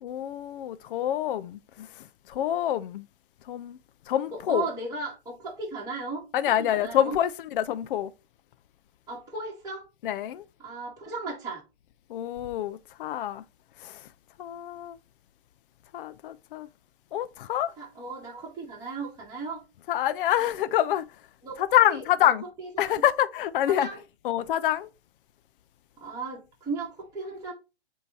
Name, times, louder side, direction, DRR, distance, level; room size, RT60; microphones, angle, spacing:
voice 1, 0.0-1.9 2.3-3.0 3.5-3.8 4.1-4.7 6.3-8.1 10.0-10.4 12.1-13.4 13.8-14.0 14.4-15.0 15.9-16.7 17.1-17.7 19.9-21.1 21.6-22.4 22.8-23.9 24.2-24.9, left 11 dB, 55° left, 0.5 m, -26 dB
voice 2, 4.3-6.2 6.6-7.2 9.1-9.8 10.6-11.6 17.8-19.6 21.4-21.6 21.9-22.3 22.6-23.0 23.7-24.0 26.0-27.5, right 3 dB, 10° right, 2.3 m, -36 dB
7.9 x 2.8 x 4.4 m
hypercardioid pair, 130°, 31 cm